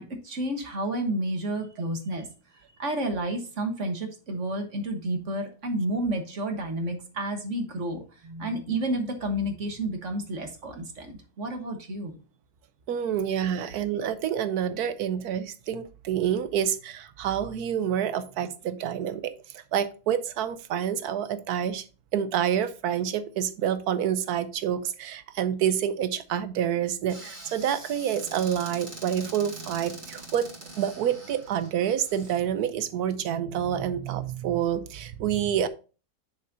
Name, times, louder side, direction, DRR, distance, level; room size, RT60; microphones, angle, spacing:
voice 1, 0.0-2.3 2.5-12.2 13.6-13.7, right 1 dB, 55° right, 5 dB, 1.5 m, -31 dB
voice 2, 12.9-21.8 22.1-30.5 30.8-35.7, right 9 dB, 90° right, 12 dB, 1.2 m, -28 dB
Squeak / Cupboard open or close, 27.1-32.4, right 2 dB, 30° right, 2.4 m, -43 dB
8.2 x 6.5 x 2.7 m, 0.34 s
omnidirectional pair, 1.6 m